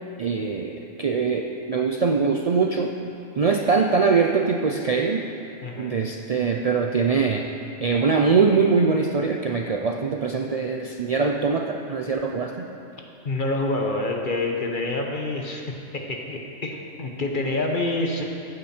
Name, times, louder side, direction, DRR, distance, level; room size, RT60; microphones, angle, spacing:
voice 1, 0.2-2.9 3.4-5.2 5.8-7.5 7.8-12.6, right 5 dB, 65° right, 2 dB, 0.3 m, -22 dB
voice 2, 5.6-6.0 13.2-18.2, left 2 dB, 40° left, 1 dB, 1.1 m, -27 dB
14.5 x 9.2 x 4.4 m, 2.8 s
omnidirectional pair, 1.4 m